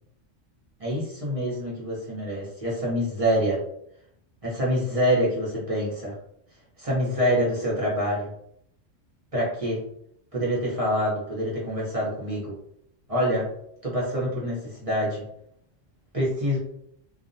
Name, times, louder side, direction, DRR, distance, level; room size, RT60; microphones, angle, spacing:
voice 1, 0.8-3.6 4.4-6.1 6.8-8.3 9.3-9.8 10.3-12.5 13.1-13.5 13.8-15.2 16.1-16.6, equal, 35° right, -6 dB, 0.6 m, -26 dB
2.4 x 2.0 x 2.5 m, 0.72 s
omnidirectional pair, 1.3 m